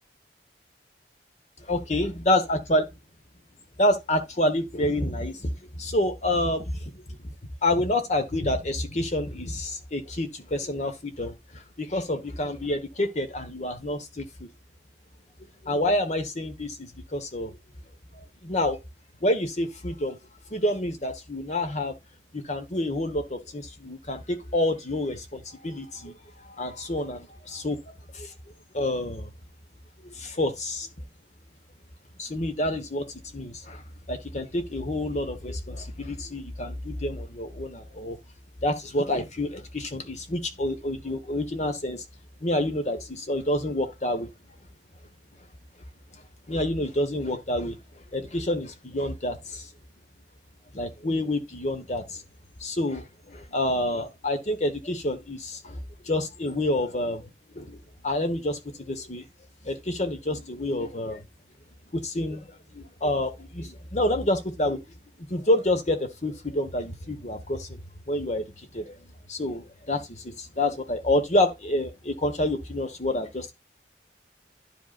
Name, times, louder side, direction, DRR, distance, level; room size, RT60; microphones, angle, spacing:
voice 1, 1.6-2.9 3.8-7.3 7.6-14.5 15.6-17.6 18.1-18.8 19.2-20.2 20.5-21.9 22.3-27.8 28.1-28.3 28.7-29.3 30.0-30.9 32.2-38.2 38.6-42.0 42.4-44.3 46.1-46.2 46.5-49.7 50.7-52.2 52.6-57.3 57.5-59.2 59.6-61.2 61.9-64.8 65.2-67.8 68.1-73.5, left 1 dB, 40° left, 1.2 m, -28 dB
11.0 x 5.1 x 2.4 m
head